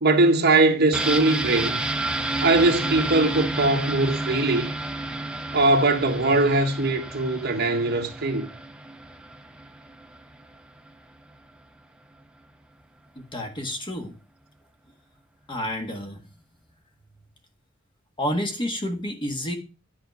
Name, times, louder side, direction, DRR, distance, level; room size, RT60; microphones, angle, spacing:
voice 1, 0.0-1.8 2.4-4.7 5.5-8.5, right 2 dB, 50° right, 1.3 m, -21 dB
sound 1, 0.9-10.6 10.9-11.0, right 2 dB, 5° right, 0.6 m, -31 dB
voice 2, 13.1-14.1 15.5-16.2 18.2-19.6, equal, 25° left, 1.6 m, -29 dB
10.5 x 4.2 x 6.0 m
head